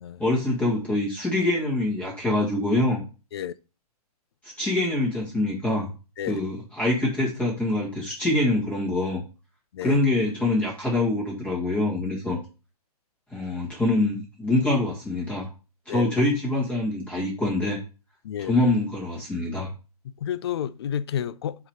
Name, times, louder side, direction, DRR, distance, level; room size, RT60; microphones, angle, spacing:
voice 1, 0.2-3.0 4.4-5.9 6.3-9.2 9.8-12.4 13.3-15.5 15.9-17.8 18.4-19.7, left 2 dB, 5° left, 1.6 m, -25 dB
voice 2, 18.2-18.6 20.2-21.6, left 9 dB, 40° left, 0.4 m, -30 dB
8.1 x 2.9 x 4.6 m
hypercardioid pair, 160°, 20 cm